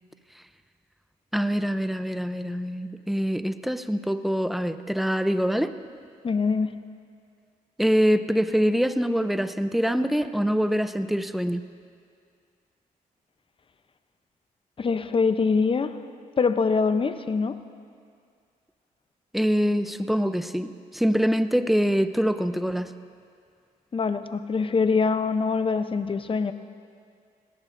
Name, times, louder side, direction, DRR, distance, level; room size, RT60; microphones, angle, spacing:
voice 1, 1.3-5.7 7.8-11.7 19.3-22.9, equal, ahead, 11 dB, 0.6 m, -24 dB
voice 2, 6.2-6.8 14.8-15.9 16.4-17.6 23.9-26.5, left 4 dB, 35° left, 11 dB, 0.7 m, -24 dB
20.0 x 17.5 x 2.6 m, 2.2 s
cardioid pair, 75°, 15 cm